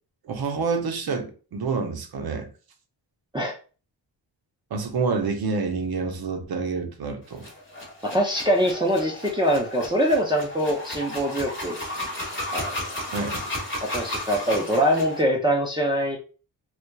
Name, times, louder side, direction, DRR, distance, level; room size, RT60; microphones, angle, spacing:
voice 1, 0.2-2.5 4.7-7.5 13.1-13.4, right 4 dB, 55° right, 0.6 m, -28 dB
sound 1, 7.3-15.2, left 1 dB, 30° left, 0.9 m, -34 dB
voice 2, 8.0-11.8 12.5-12.8 13.8-16.2, equal, 10° right, 0.4 m, -23 dB
2.7 x 2.2 x 2.2 m
wide cardioid pair, 90°, 43 cm